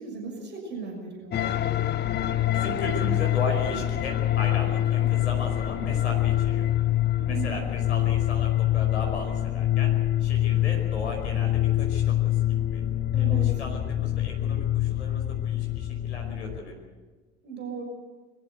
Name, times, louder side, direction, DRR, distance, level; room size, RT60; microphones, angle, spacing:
voice 1, 0.0-1.4 7.2-7.6 13.1-13.5 17.4-17.8, right 5 dB, 30° right, 2 dB, 6.3 m, -36 dB
sound 1, 1.3-16.6, left 13 dB, 30° left, 1.3 m, -25 dB
voice 2, 2.5-6.7 7.3-9.9 10.2-12.4 12.7-12.8 13.2-16.8, left 2 dB, 80° left, 1 dB, 5.3 m, -36 dB
23.0 x 14.5 x 8.1 m, 1.3 s
figure-of-eight pair, 80°, 34 cm